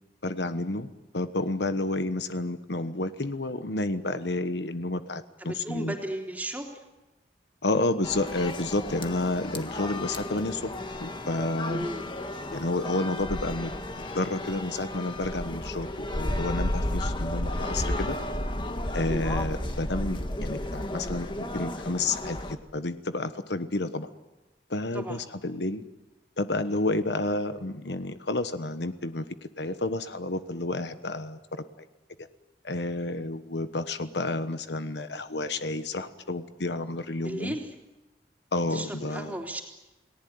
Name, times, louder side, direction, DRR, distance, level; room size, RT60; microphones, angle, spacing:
voice 1, 0.2-0.9 1.1-5.9 7.6-10.7 11.0-11.9 12.5-13.7 14.1-18.2 18.9-24.1 24.7-25.8 26.4-29.3 29.6-31.9 32.6-37.6 38.5-39.4, left 2 dB, 70° left, 10 dB, 1.2 m, -30 dB
voice 2, 5.4-6.8 11.7-12.1 19.1-19.3 24.9-25.2 37.2-37.7 38.7-39.6, right 1 dB, 10° right, 2 dB, 3.5 m, -35 dB
sound 1, 8.0-22.6, left 1 dB, 25° left, 1.6 m, -33 dB
29.5 x 19.0 x 9.5 m, 1.1 s
head